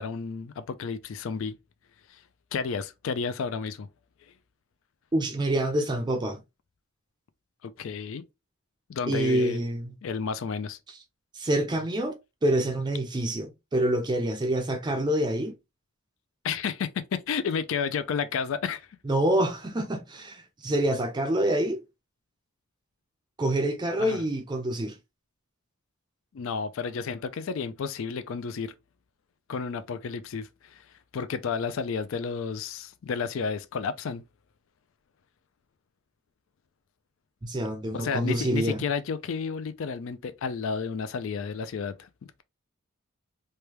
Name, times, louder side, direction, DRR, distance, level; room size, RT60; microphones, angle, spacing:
voice 1, 0.0-1.6 2.1-2.2 2.5-3.9 7.6-8.2 8.9-9.6 10.0-10.8 16.4-18.9 24.0-24.3 26.3-28.7 29.5-30.9 31.1-34.2 37.9-42.1, left 5 dB, 65° left, 0.4 m, -31 dB
voice 2, 5.1-6.4 9.1-9.9 11.3-15.5 19.1-21.8 23.4-25.0 37.4-38.8, right 1 dB, 20° right, 0.4 m, -27 dB
3.2 x 2.2 x 2.9 m
head